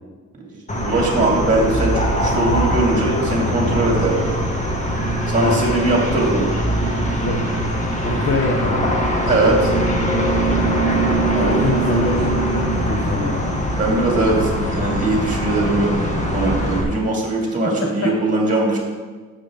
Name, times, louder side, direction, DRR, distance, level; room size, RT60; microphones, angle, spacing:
sound 1, 0.7-16.8, right 1 dB, 25° left, 2.0 m, -21 dB
voice 1, 0.8-4.3 5.3-6.5 9.3-9.7 11.3-11.6 13.8-15.9 16.2-18.8, right 2 dB, 25° right, -2 dB, 2.7 m, -20 dB
voice 2, 8.0-9.0 11.4-13.4 18.0-18.1, left 2 dB, 45° left, 0 dB, 1.4 m, -24 dB
11.5 x 7.4 x 3.7 m, 1.4 s
cardioid pair, 90°, 30 cm